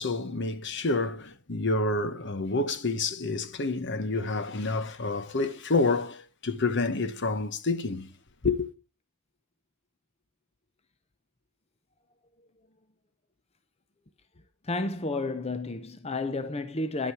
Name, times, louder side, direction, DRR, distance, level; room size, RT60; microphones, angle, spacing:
voice 1, 0.0-8.1 8.4-8.7, left 3 dB, 55° left, 1.1 m, -28 dB
voice 2, 14.6-17.1, left 2 dB, 30° left, 0.7 m, -31 dB
10.5 x 8.6 x 4.7 m
head